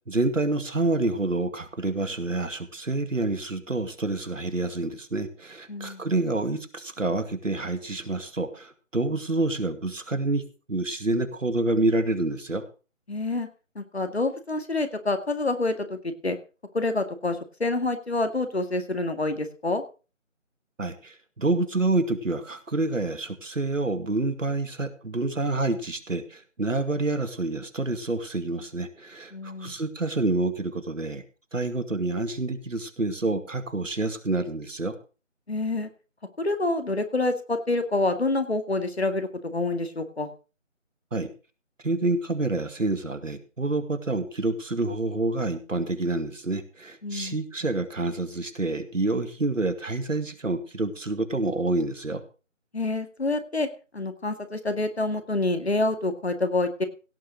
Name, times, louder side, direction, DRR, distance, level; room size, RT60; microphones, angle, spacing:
voice 1, 0.1-10.4 10.7-12.7 20.8-31.2 31.5-35.0 41.1-41.3 41.8-52.2, right 2 dB, 75° right, 10 dB, 2.3 m, -28 dB
voice 2, 5.7-6.0 13.1-13.5 13.8-16.4 16.7-19.8 29.3-29.7 35.5-35.9 36.4-40.3 47.0-47.4 52.7-53.7 53.9-56.8, left 2 dB, 55° left, 8 dB, 2.1 m, -27 dB
17.0 x 6.6 x 6.1 m, 0.34 s
figure-of-eight pair, 175°, 39 cm